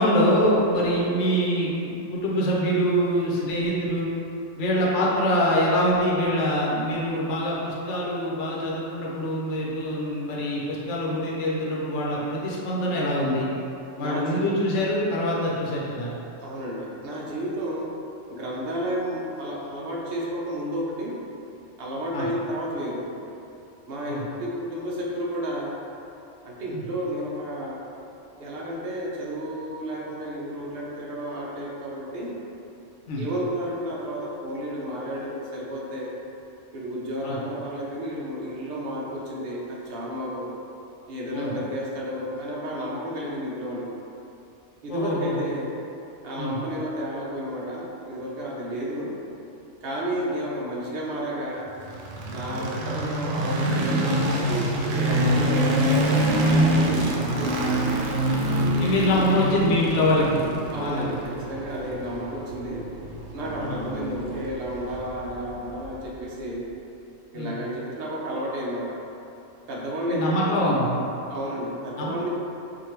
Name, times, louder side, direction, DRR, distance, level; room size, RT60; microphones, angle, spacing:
voice 1, 0.0-4.1 4.6-13.5 14.0-16.1 22.1-22.3 24.0-24.3 26.7-26.8 33.1-33.3 37.2-37.4 41.3-41.6 44.9-45.4 46.4-46.6 58.8-60.4 60.7-61.1 63.6-63.8 67.3-67.5 70.1-71.0 72.0-72.1, equal, 75° left, -5 dB, 1.0 m, -24 dB
voice 2, 14.0-14.4 16.4-18.0 18.3-21.2 21.8-23.1 23.9-25.8 26.4-27.8 28.4-32.3 33.2-36.1 36.7-40.5 41.1-43.9 44.8-45.7 46.2-49.1 49.8-51.7 52.3-54.1 54.8-57.8 60.7-62.9 63.3-66.7 67.3-69.0 69.7-70.5 71.3-72.3, equal, 60° right, -4 dB, 0.9 m, -32 dB
sound 1, 51.8-65.9, right 1 dB, 90° right, 0.9 m, -25 dB
4.8 x 2.6 x 2.9 m, 2.8 s
omnidirectional pair, 1.3 m